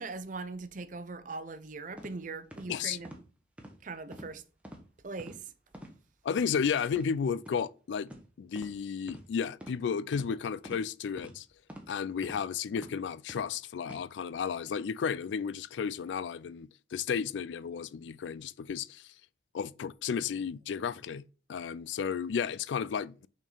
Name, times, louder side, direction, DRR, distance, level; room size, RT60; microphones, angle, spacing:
voice 1, 0.0-3.1 3.8-4.4 5.0-5.5, right 3 dB, 45° right, 0.6 m, -40 dB
sound 1, 2.0-2.1 2.5-2.7 3.0-3.2 3.6-3.7 4.1-4.3 4.6-4.8 5.2-5.4 5.7-5.9 6.3-6.5 6.9-7.1 7.4-7.6 8.1-8.2 8.5-8.7 9.1-9.2 9.6-9.8 10.1-10.3 10.6-10.8 11.2-11.3 11.7-11.9 12.2-12.4 12.8-12.9 13.3-13.5 13.8-14.0, equal, 5° right, 1.1 m, -46 dB
voice 2, 6.2-8.1 8.4-11.5 11.9-19.1 19.5-21.2 21.5-23.3, left 6 dB, 90° left, 0.4 m, -33 dB
5.9 x 4.3 x 3.9 m
head